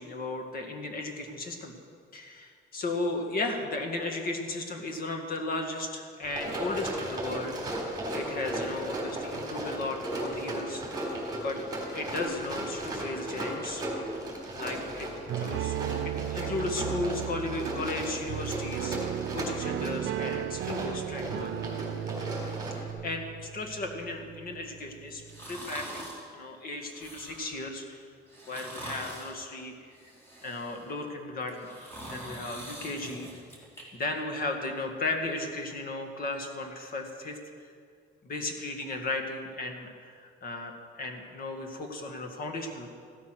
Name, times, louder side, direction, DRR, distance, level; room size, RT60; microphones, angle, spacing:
voice 1, 0.0-1.7 2.1-7.8 8.1-10.8 11.4-11.6 11.9-13.8 14.6-15.8 16.0-19.0 19.3-21.7 23.0-28.0 28.5-30.1 30.4-31.7 32.0-33.3 33.9-37.4 38.2-42.9, left 2 dB, 45° left, 4 dB, 2.0 m, -35 dB
Run, 6.2-22.9, right 1 dB, 20° right, 3.6 m, -36 dB
sound 1, 15.3-25.8, right 12 dB, 80° right, 0.6 m, -36 dB
sound 2, 25.3-26.2 26.8-27.6 28.3-29.4 29.9-30.9 31.4-33.8 34.2-34.3, right 1 dB, 10° left, 3.6 m, -43 dB
15.5 x 13.0 x 6.1 m, 2.1 s
cardioid pair, 155°, 20 cm